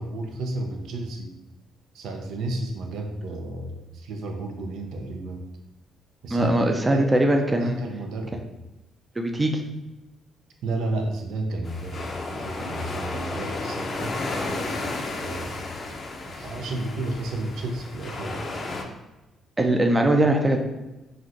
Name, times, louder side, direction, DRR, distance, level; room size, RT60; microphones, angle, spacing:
voice 1, 0.0-1.3 1.9-5.4 6.2-7.1 7.6-8.4 10.6-12.0 12.3-14.2 14.9-15.6 16.3-18.5, right 2 dB, 85° right, 2 dB, 0.4 m, -32 dB
voice 2, 6.3-7.8 9.2-9.6 19.6-20.6, right 1 dB, 20° right, 4 dB, 0.4 m, -21 dB
sound 1, 11.6-18.8, left 2 dB, 45° left, 0.4 m, -33 dB
3.1 x 2.5 x 2.5 m, 1.0 s
cardioid pair, 90°, 0 cm